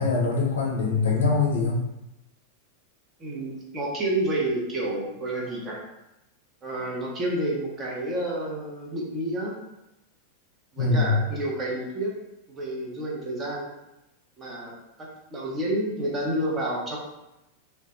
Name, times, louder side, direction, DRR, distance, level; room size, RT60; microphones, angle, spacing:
voice 1, 0.0-1.8 10.8-11.2, left 4 dB, 65° left, -1 dB, 0.5 m, -23 dB
voice 2, 3.2-5.8 6.6-9.6 10.7-12.2 12.5-13.7 14.4-14.7 15.0-17.0, right 1 dB, 25° right, -3 dB, 0.6 m, -29 dB
2.1 x 2.1 x 2.9 m, 0.93 s
figure-of-eight pair, 90°, 0 cm